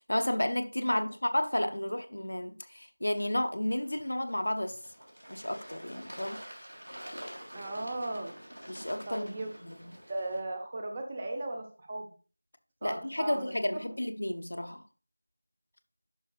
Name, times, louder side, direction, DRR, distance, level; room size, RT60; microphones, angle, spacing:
voice 1, 0.1-4.8 5.3-6.4 8.7-9.3 9.6-9.9 12.8-14.8, left 1 dB, 55° left, 0.9 m, -32 dB
Bird / Water, 3.7-10.4, equal, 70° right, 3.3 m, -47 dB
voice 2, 7.5-8.3 9.0-9.5 10.1-12.1 12.8-13.5, right 2 dB, 15° right, 0.8 m, -37 dB
11.0 x 5.6 x 2.4 m
figure-of-eight pair, 175°, 0 cm